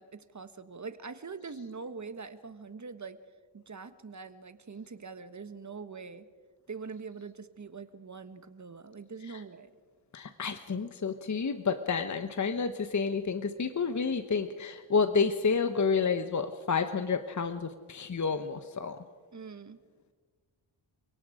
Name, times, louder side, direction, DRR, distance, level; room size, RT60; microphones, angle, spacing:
voice 1, 0.0-3.2 3.5-6.3 6.7-9.7 19.3-19.8, right 5 dB, 35° right, 11 dB, 1.5 m, -43 dB
voice 2, 10.1-19.0, left 5 dB, 35° left, 9 dB, 1.2 m, -30 dB
29.5 x 18.0 x 5.0 m, 1.5 s
cardioid pair, 65°, 48 cm